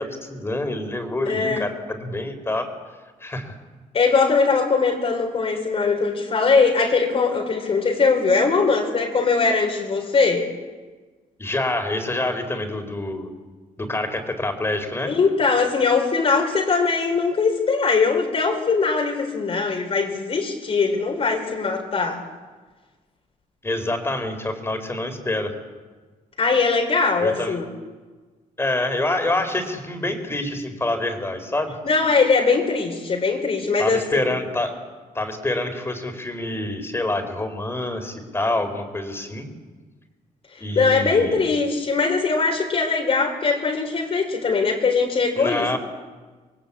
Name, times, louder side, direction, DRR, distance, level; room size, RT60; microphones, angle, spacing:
voice 1, 0.0-2.7 3.2-3.6 11.4-13.3 13.8-15.1 23.6-25.5 27.2-27.6 28.6-31.7 33.8-34.7 35.1-39.5 40.6-41.4 45.4-45.8, left 2 dB, 15° left, 7 dB, 4.2 m, -26 dB
voice 2, 1.3-1.7 3.9-10.5 15.0-22.2 26.4-27.6 31.8-34.0 40.5-45.8, left 4 dB, 45° left, 2 dB, 4.0 m, -21 dB
28.0 x 22.5 x 8.6 m, 1.4 s
cardioid pair, 125°, 14 cm